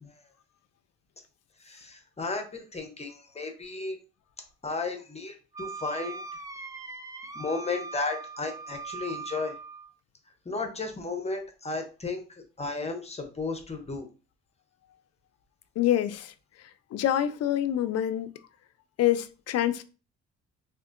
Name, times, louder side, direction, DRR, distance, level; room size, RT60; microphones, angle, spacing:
voice 1, 1.6-4.0 4.6-6.2 7.3-9.5 10.5-12.2 12.6-14.1, left 3 dB, 20° left, 0.7 m, -34 dB
Wind instrument woodwind instrument, 5.5-9.9, right 4 dB, 10° right, 0.3 m, -40 dB
voice 2, 15.8-16.3 16.9-18.3 19.0-19.8, left 12 dB, 55° left, 0.4 m, -26 dB
3.6 x 2.5 x 2.5 m
cardioid pair, 90°, 30 cm